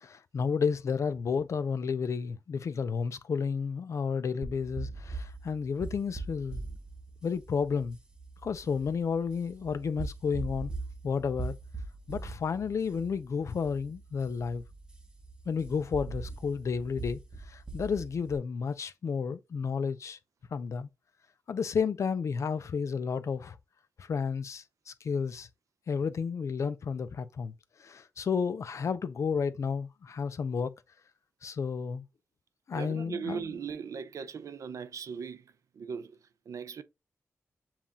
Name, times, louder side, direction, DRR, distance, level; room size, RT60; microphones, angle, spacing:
voice 1, 0.0-6.6 7.2-8.0 8.4-10.7 11.0-11.6 12.1-14.6 15.5-17.2 17.5-20.2 20.5-20.9 21.5-23.6 24.0-25.5 25.9-27.5 27.8-30.8 31.4-32.0 32.7-33.4, left 6 dB, 65° left, 0.5 m, -31 dB
sound 1, 4.4-18.4, right 3 dB, 15° right, 0.8 m, -42 dB
voice 2, 32.7-36.8, right 6 dB, 80° right, 0.5 m, -39 dB
7.2 x 2.4 x 2.7 m
wide cardioid pair, 90°, 6 cm